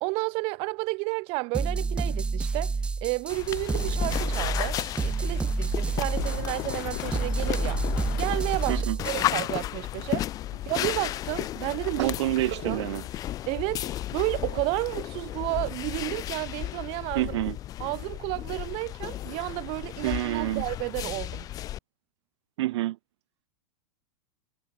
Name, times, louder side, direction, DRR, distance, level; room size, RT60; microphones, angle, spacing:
voice 1, 0.0-2.7 3.0-7.8 8.1-10.3 10.7-12.1 12.5-12.8 13.5-13.8 14.1-17.3 17.8-21.5, right 28 dB, 35° right, 1.2 m, -31 dB
sound 1, 1.5-9.2, right 4 dB, 5° right, 0.6 m, -29 dB
sound 2, 3.3-21.8, left 13 dB, 20° left, 1.1 m, -33 dB
Run, 5.9-13.4, left 30 dB, 40° left, 1.8 m, -43 dB
voice 2, 12.0-13.1 17.1-17.6 20.0-20.6 22.6-23.0, right 16 dB, 55° right, 0.7 m, -27 dB
supercardioid pair, 170°, 17 cm